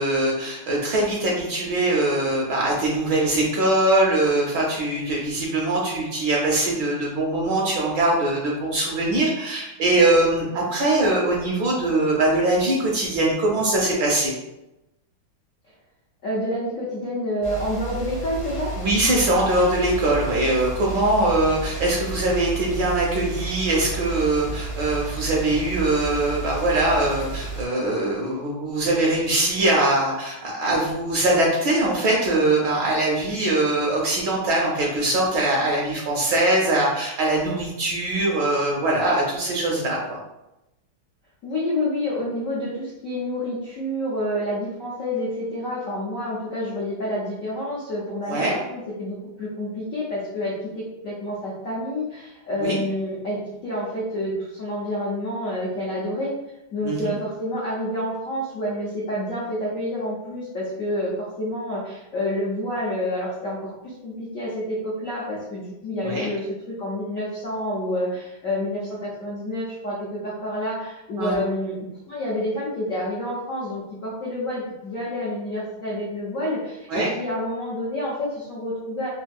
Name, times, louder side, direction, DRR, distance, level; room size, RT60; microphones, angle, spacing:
voice 1, 0.0-14.3 18.8-40.2 48.3-48.6 52.6-52.8 56.8-57.1 66.0-66.3 71.2-71.4 76.9-77.1, right 2 dB, 75° right, -2 dB, 1.1 m, -22 dB
voice 2, 16.2-18.7 41.4-56.3 56.7-71.7 72.1-79.1, left 1 dB, 80° left, -6 dB, 0.7 m, -28 dB
sound 1, 17.4-27.6, right 3 dB, 45° left, 0.4 m, -32 dB
3.5 x 2.5 x 2.3 m, 0.93 s
omnidirectional pair, 2.3 m